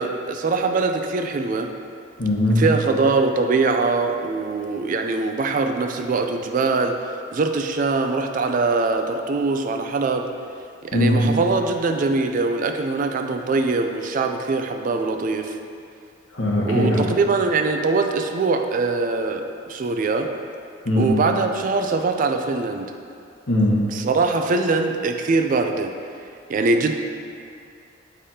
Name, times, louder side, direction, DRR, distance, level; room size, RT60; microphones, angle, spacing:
voice 1, 0.0-1.7 2.6-7.0 7.3-10.3 10.8-15.5 16.7-20.3 21.0-22.9 23.9-25.9 26.5-26.9, right 3 dB, 40° right, 5 dB, 0.3 m, -22 dB
voice 2, 2.2-2.6 10.9-11.3 16.3-17.0 20.8-21.1 23.5-23.8, left 1 dB, 70° left, -4 dB, 1.2 m, -19 dB
7.3 x 5.0 x 2.8 m, 2.4 s
head